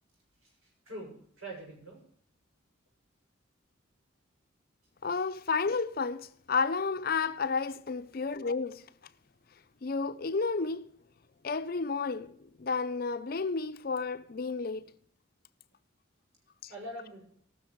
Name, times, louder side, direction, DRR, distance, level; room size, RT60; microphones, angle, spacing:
voice 1, 0.8-2.0 16.7-17.2, right 1 dB, 85° right, 6.2 m, -43 dB
voice 2, 5.0-8.8 9.8-10.9 11.4-14.9, left 4 dB, 45° left, 0.5 m, -31 dB
18.5 x 6.4 x 4.6 m
head